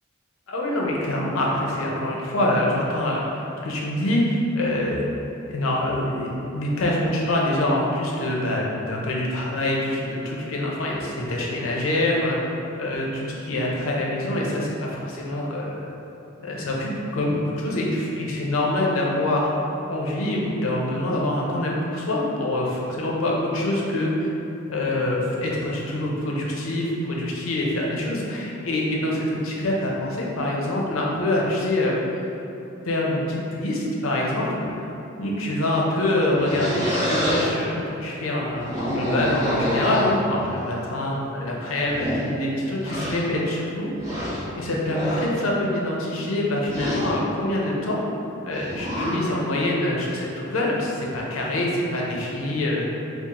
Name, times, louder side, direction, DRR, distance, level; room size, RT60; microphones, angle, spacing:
voice 1, 0.5-5.1 5.5-12.4 12.8-15.9 16.4-19.5 19.9-24.3 24.7-32.0 32.8-34.9 35.2-43.9 44.6-48.0 48.4-52.9, left 1 dB, 85° left, -3 dB, 0.6 m, -25 dB
sound 1, 36.3-37.5 38.5-40.5 41.2-41.3 41.8-42.3 42.8-43.2 44.0-44.4 44.8-45.3 46.6-47.1 48.5-49.2, equal, 15° right, 1.0 m, -27 dB
3.7 x 2.4 x 2.9 m, 2.9 s
head